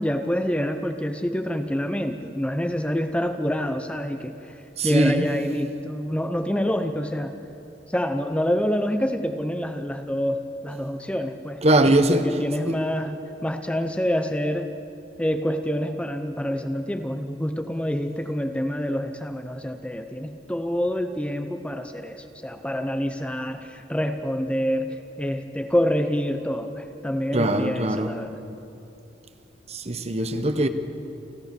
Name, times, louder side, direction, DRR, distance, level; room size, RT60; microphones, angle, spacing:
voice 1, 0.0-4.6 4.8-7.3 7.9-11.6 12.1-14.7 15.2-28.4, equal, 5° left, 0.7 m, -27 dB
voice 2, 4.8-5.3 11.6-12.3 12.7-12.8 27.3-28.1 29.7-30.7, right 1 dB, 35° right, 1.1 m, -21 dB
29.0 x 13.5 x 6.9 m
head